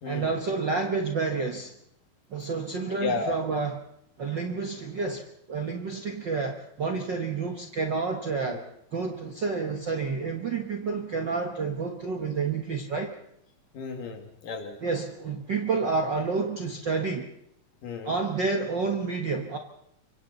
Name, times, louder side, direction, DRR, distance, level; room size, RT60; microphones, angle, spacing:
voice 1, 0.0-1.7 2.3-3.8 4.2-8.6 8.9-13.2 14.8-17.3 18.0-19.6, right 4 dB, 55° right, 3 dB, 1.3 m, -29 dB
voice 2, 3.0-3.4 8.5-8.6 13.7-14.8 17.8-18.1, left 4 dB, 65° left, 4 dB, 3.8 m, -33 dB
26.0 x 24.5 x 4.1 m, 0.75 s
omnidirectional pair, 4.1 m